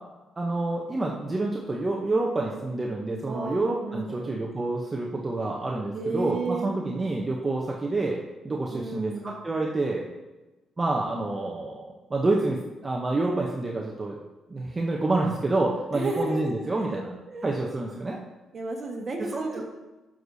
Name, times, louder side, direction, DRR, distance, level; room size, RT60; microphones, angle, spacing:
voice 1, 0.4-10.1 10.8-14.2 14.5-17.1 17.4-18.2 19.3-19.6, right 2 dB, 20° right, -1 dB, 0.8 m, -28 dB
voice 2, 3.3-4.3 5.9-6.7 8.7-9.3 15.9-17.6 18.5-19.6, right 2 dB, 35° right, 1 dB, 1.4 m, -33 dB
12.0 x 6.3 x 2.7 m, 1.1 s
cardioid pair, 130°, 0 cm